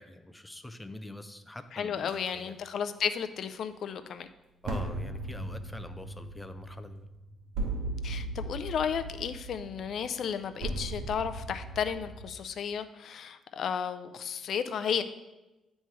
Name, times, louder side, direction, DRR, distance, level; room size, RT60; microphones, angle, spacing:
voice 1, 0.0-2.5 4.6-7.1, left 1 dB, 10° left, 9 dB, 0.5 m, -44 dB
voice 2, 1.7-4.3 8.0-15.0, left 7 dB, 65° left, 10 dB, 0.4 m, -33 dB
sound 1, 2.1-2.3 4.6-12.3, right 2 dB, 85° right, 1.1 m, -37 dB
9.1 x 3.2 x 4.5 m, 1.0 s
cardioid pair, 90°, 0 cm